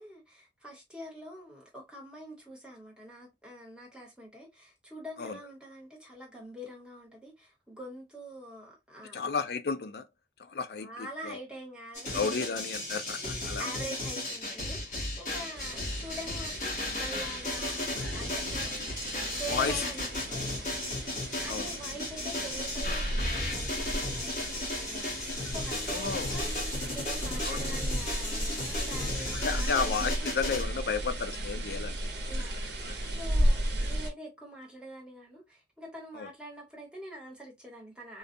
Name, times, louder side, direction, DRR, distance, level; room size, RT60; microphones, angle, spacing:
voice 1, 0.0-9.2 10.7-12.1 13.2-18.7 19.3-26.5 26.9-30.4 32.3-38.2, right 1 dB, 5° right, 1.1 m, -45 dB
voice 2, 9.1-10.1 10.4-11.4 12.1-13.7 19.5-19.8 21.5-21.8 25.9-26.3 27.4-27.7 29.4-32.0 32.8-33.0 36.1-36.3, left 5 dB, 65° left, 0.4 m, -33 dB
sound 1, 11.9-30.6, left 2 dB, 45° left, 1.7 m, -35 dB
sound 2, 15.5-34.1, right 1 dB, 80° right, 0.8 m, -35 dB
3.8 x 2.3 x 2.5 m
head